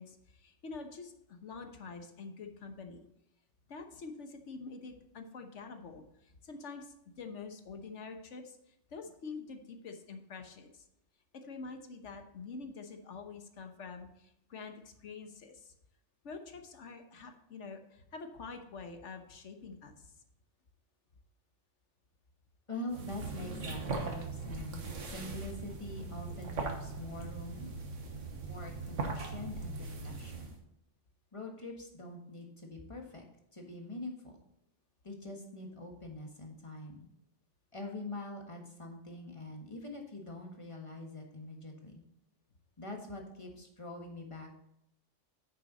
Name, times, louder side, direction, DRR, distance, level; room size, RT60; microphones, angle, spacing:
voice 1, 0.0-3.0 3.7-10.8 11.3-15.7 16.2-20.1, left 4 dB, 75° left, 6 dB, 1.4 m, -46 dB
voice 2, 22.7-27.7 28.5-30.5 31.3-33.2 33.5-34.4 35.0-37.1 37.7-42.0 42.8-44.6, left 2 dB, 25° left, 1 dB, 1.5 m, -44 dB
sound 1, 22.9-30.6, right 3 dB, 90° right, 1.6 m, -40 dB
9.1 x 6.7 x 4.0 m, 0.80 s
omnidirectional pair, 1.2 m